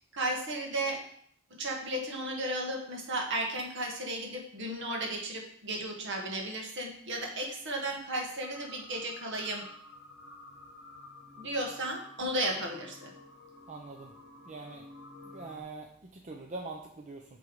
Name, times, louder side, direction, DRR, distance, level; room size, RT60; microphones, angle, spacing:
voice 1, 0.1-1.0 1.6-9.6 11.4-13.1, right 1 dB, 60° right, 2 dB, 1.4 m, -34 dB
sound 1, 8.4-15.6, left 2 dB, 5° right, 3.2 m, -51 dB
voice 2, 13.7-14.1 14.4-14.8 15.3-15.9 16.1-17.2, right 3 dB, 35° right, 1 dB, 0.6 m, -43 dB
8.1 x 3.4 x 5.3 m, 0.66 s
head